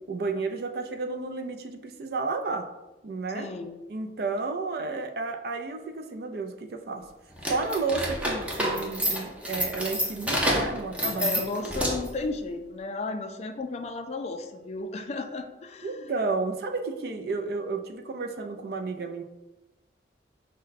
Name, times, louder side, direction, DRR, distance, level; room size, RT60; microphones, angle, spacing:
voice 1, 0.1-2.7 3.0-3.5 3.9-7.0 7.5-11.4 15.8-19.2, right 3 dB, 60° right, 6 dB, 0.4 m, -32 dB
voice 2, 3.3-3.8 11.2-16.1, left 3 dB, 35° left, 7 dB, 0.3 m, -34 dB
sound 1, 7.4-12.2, equal, 5° right, 0.6 m, -28 dB
5.2 x 2.2 x 3.9 m, 1.0 s
head